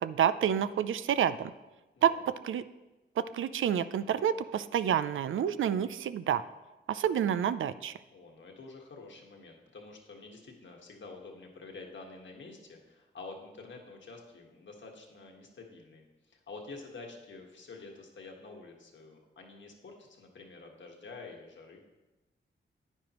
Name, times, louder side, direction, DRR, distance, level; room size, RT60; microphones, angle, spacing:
voice 1, 0.0-1.5 2.0-2.6 3.2-6.4 6.9-7.9, right 9 dB, 80° right, 13 dB, 0.4 m, -29 dB
voice 2, 8.1-21.8, left 3 dB, 65° left, 1 dB, 1.6 m, -48 dB
9.8 x 9.4 x 3.0 m, 1.1 s
cardioid pair, 75°, 20 cm